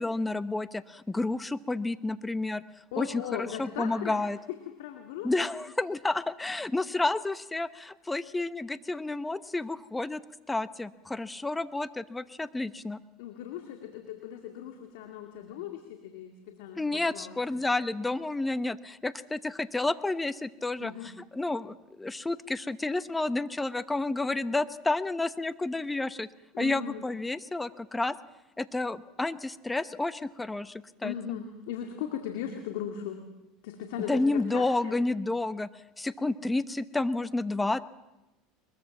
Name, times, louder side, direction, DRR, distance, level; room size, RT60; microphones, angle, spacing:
voice 1, 0.0-2.6 3.0-4.4 5.2-10.2 10.5-13.0 16.8-26.3 26.6-28.2 28.6-31.1 34.1-35.7 36.0-37.8, left 2 dB, 10° left, 14 dB, 1.0 m, -30 dB
voice 2, 2.9-4.2 4.7-5.3 13.2-17.6 20.8-21.1 26.5-27.0 31.0-33.2 33.6-35.0, left 9 dB, 80° left, 5 dB, 2.3 m, -38 dB
22.5 x 21.5 x 7.3 m, 0.98 s
supercardioid pair, 100°, 0 cm